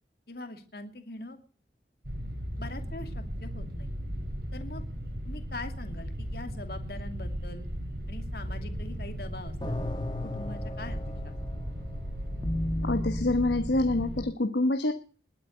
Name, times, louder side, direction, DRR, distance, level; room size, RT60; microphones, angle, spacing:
voice 1, 0.3-1.4 2.6-3.9 4.5-4.8 5.2-7.7 8.1-11.0 11.2-11.3, left 2 dB, 60° left, 6 dB, 2.4 m, -43 dB
sound 1, 2.0-14.2, equal, 60° right, 4.5 m, -37 dB
sound 2, 8.4-14.3, left 1 dB, 25° left, 1.5 m, -36 dB
voice 2, 12.8-14.9, left 2 dB, 80° left, 7 dB, 1.3 m, -26 dB
20.5 x 8.5 x 7.9 m, 0.42 s
head